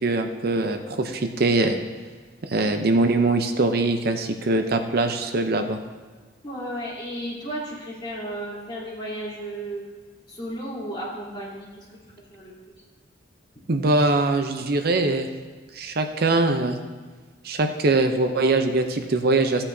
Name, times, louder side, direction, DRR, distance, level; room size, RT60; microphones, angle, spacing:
voice 1, 0.0-1.8 2.4-5.8 13.7-15.3 15.7-16.8 17.4-19.6, right 2 dB, 55° right, 6 dB, 0.7 m, -22 dB
voice 2, 6.4-9.8 10.3-11.8 12.3-12.5, right 1 dB, 25° left, -8 dB, 3.5 m, -34 dB
15.0 x 8.7 x 2.7 m, 1.4 s
head